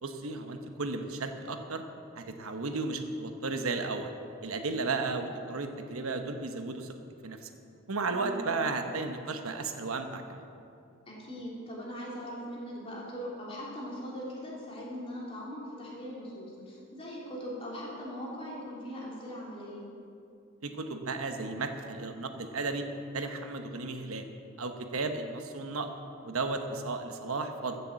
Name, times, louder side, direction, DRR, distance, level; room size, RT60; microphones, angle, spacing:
voice 1, 0.0-1.8 2.2-4.1 4.4-6.9 7.2-7.5 7.9-10.4 20.6-22.9 23.1-24.3 24.6-25.9 26.2-27.8, right 3 dB, 90° right, 6 dB, 1.1 m, -34 dB
voice 2, 8.0-8.5 11.1-19.9, equal, 25° left, -5 dB, 3.4 m, -40 dB
15.0 x 6.8 x 7.6 m, 2.6 s
head